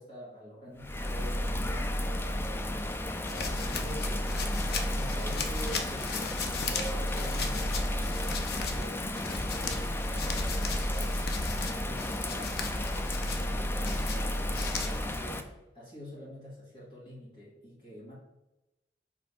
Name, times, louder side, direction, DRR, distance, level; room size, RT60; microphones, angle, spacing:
voice 1, 0.0-4.6 5.0-11.2 11.6-18.1, equal, 30° left, -7 dB, 1.8 m, -46 dB
Bird vocalization bird call bird song / Rain, 0.8-15.4, left 1 dB, 15° left, 0.4 m, -32 dB
sound 1, 3.2-15.1, left 5 dB, 60° left, 0.7 m, -38 dB
5.0 x 3.3 x 5.6 m, 0.96 s
head